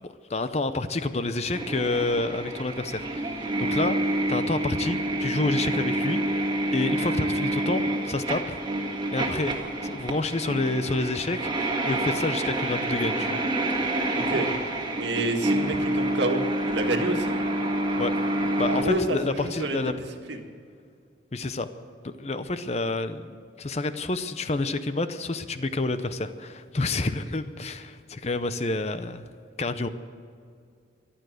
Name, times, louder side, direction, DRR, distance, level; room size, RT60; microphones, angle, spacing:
voice 1, 0.0-8.6 9.1-9.5 9.8-13.4 13.7-13.8 18.0-18.1 18.6-19.9 21.3-21.7 22.0-23.3 23.6-29.3 29.6-29.9, left 2 dB, 35° left, 11 dB, 0.6 m, -29 dB
sound 1, 1.5-18.8, right 1 dB, 20° right, 1.8 m, -28 dB
voice 2, 14.2-14.5 14.9-17.3 18.7-19.8 20.3-20.4, right 2 dB, 70° right, 4 dB, 1.8 m, -28 dB
14.5 x 11.5 x 7.8 m, 2.3 s
head